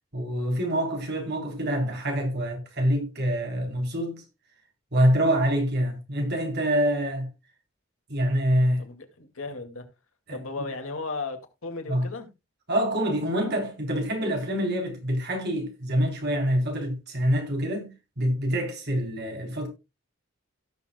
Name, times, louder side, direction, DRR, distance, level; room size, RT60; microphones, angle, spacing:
voice 1, 0.1-4.2 4.9-7.3 8.1-8.8 10.3-10.4 11.9-12.0 12.7-17.9 18.2-19.7, equal, 55° right, 3.7 m, -26 dB
voice 2, 8.8-9.8 10.3-12.3, left 3 dB, 80° left, 2.2 m, -35 dB
17.5 x 6.8 x 2.2 m
head